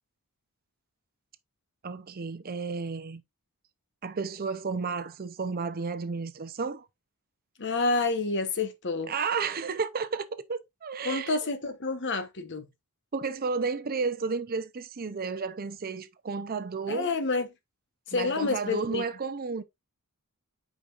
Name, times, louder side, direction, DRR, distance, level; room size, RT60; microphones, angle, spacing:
voice 1, 1.8-3.2 4.0-6.9 9.1-11.4 13.1-17.1 18.1-19.6, right 4 dB, 40° right, 0.6 m, -32 dB
voice 2, 7.6-9.1 11.0-12.7 16.9-17.5 18.1-19.0, left 3 dB, 55° left, 1.0 m, -29 dB
8.1 x 5.2 x 2.4 m
head